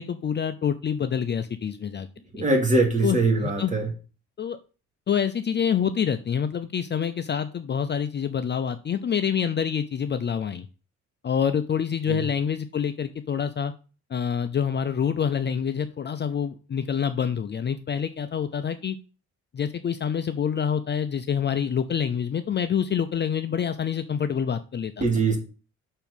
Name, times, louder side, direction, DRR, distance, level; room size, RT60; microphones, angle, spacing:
voice 1, 0.0-2.1 2.4-2.5 3.0-3.7 4.4-4.6 5.1-10.7 11.2-13.7 14.1-19.0 19.5-25.0, left 7 dB, 35° left, 10 dB, 0.5 m, -27 dB
voice 2, 2.3-3.9 12.1-12.2 25.0-25.4, right 3 dB, 25° right, 0 dB, 2.5 m, -22 dB
6.0 x 4.5 x 5.2 m, 0.35 s
cardioid pair, 90°, 30 cm